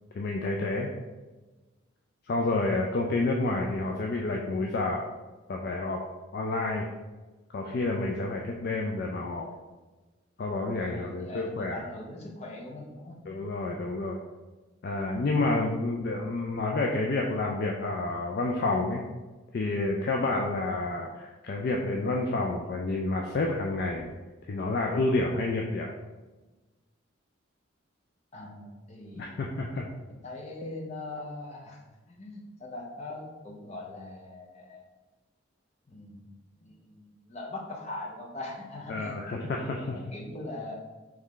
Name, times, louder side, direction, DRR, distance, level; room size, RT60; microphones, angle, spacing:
voice 1, 0.1-0.9 2.3-5.1 5.5-6.0 6.3-6.9 7.5-9.5 10.4-11.8 13.3-14.2 14.8-19.0 19.5-24.1 24.5-25.9 29.1-29.9 38.9-40.0, left 2 dB, 50° left, 0 dB, 0.3 m, -29 dB
voice 2, 10.8-13.2 28.3-29.3 30.1-31.8 32.1-34.9 35.9-40.8, left 2 dB, 35° left, -2 dB, 0.8 m, -41 dB
3.5 x 3.2 x 3.7 m, 1.2 s
head